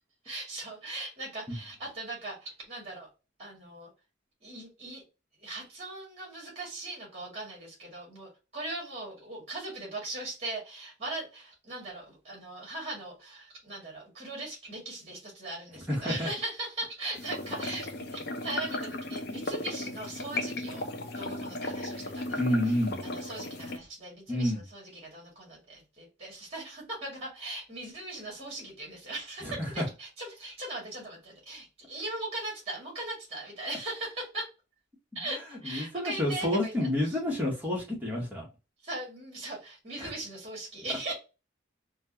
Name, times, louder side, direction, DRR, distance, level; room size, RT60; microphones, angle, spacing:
voice 1, 0.2-3.1 3.4-3.9 4.4-5.0 5.4-20.9 21.1-22.7 23.0-29.5 29.7-34.5 35.1-37.2 38.8-41.1, right 2 dB, 30° right, 2.0 m, -39 dB
voice 2, 15.9-16.3 22.4-23.0 24.3-24.6 29.4-29.5 35.6-38.5 40.0-40.1, left 1 dB, 10° right, 1.2 m, -29 dB
sound 1, 17.1-23.8, left 2 dB, 55° left, 0.5 m, -36 dB
4.3 x 2.3 x 2.8 m
head